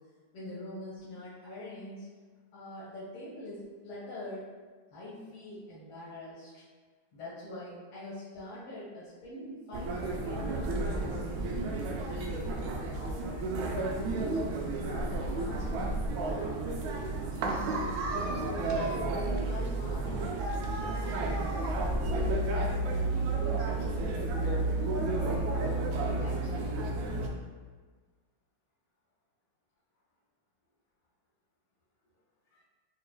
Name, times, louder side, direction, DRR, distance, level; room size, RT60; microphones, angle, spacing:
voice 1, 0.3-2.1 2.5-4.5 4.9-6.6 7.1-13.5 13.9-16.6 17.3-21.5 22.1-26.7 32.5-32.6, left 1 dB, 85° left, -10 dB, 1.9 m, -44 dB
sound 1, 9.7-27.3, right 2 dB, 80° right, 1.4 m, -31 dB
5.8 x 2.4 x 2.3 m, 1.4 s
omnidirectional pair, 2.3 m